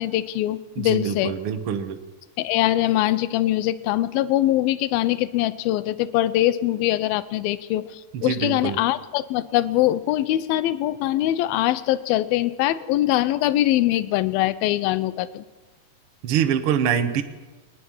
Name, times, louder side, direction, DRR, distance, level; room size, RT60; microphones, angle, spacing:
voice 1, 0.0-1.3 2.4-15.4, left 14 dB, 75° left, 15 dB, 2.4 m, -23 dB
voice 2, 0.8-2.0 8.1-8.8 16.2-17.2, right 8 dB, 85° right, 7 dB, 1.2 m, -24 dB
22.5 x 20.0 x 7.4 m, 1.2 s
omnidirectional pair, 4.8 m